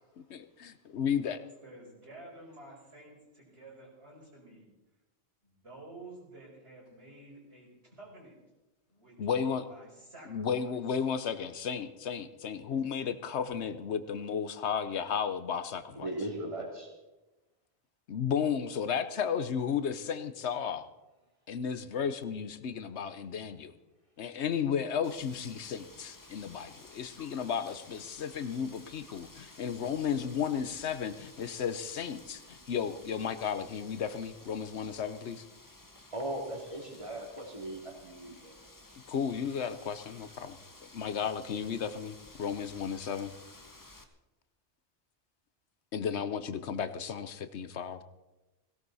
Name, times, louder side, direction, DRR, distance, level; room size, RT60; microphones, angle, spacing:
voice 1, 0.3-1.4 9.2-9.7 10.3-16.1 18.1-20.9 21.5-23.7 24.2-35.4 39.1-43.3 45.9-48.0, left 7 dB, 80° left, 12 dB, 1.1 m, -34 dB
voice 2, 1.6-4.7 5.4-8.4 8.9-10.8, right 2 dB, 75° right, -3 dB, 5.5 m, -51 dB
voice 3, 15.9-16.9 35.9-38.6, right 1 dB, 30° right, 0 dB, 3.1 m, -38 dB
Wind, 25.0-44.0, left 2 dB, 20° left, 1.0 m, -54 dB
17.5 x 17.0 x 4.1 m, 1.0 s
omnidirectional pair, 1.1 m